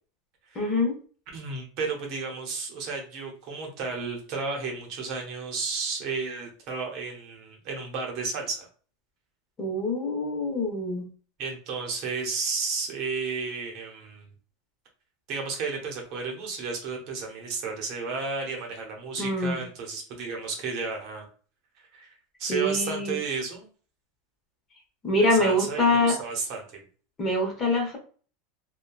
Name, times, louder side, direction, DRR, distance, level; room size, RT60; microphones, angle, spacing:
voice 1, 0.5-1.0 9.6-11.0 19.2-19.6 22.5-23.2 25.0-26.2 27.2-28.0, left 1 dB, 25° left, 0 dB, 0.9 m, -25 dB
voice 2, 1.3-8.7 11.4-14.3 15.3-21.3 21.8-23.7 25.2-26.6, right 4 dB, 50° right, 1 dB, 0.8 m, -33 dB
2.8 x 2.2 x 2.3 m, 0.41 s
supercardioid pair, 135°, 0 cm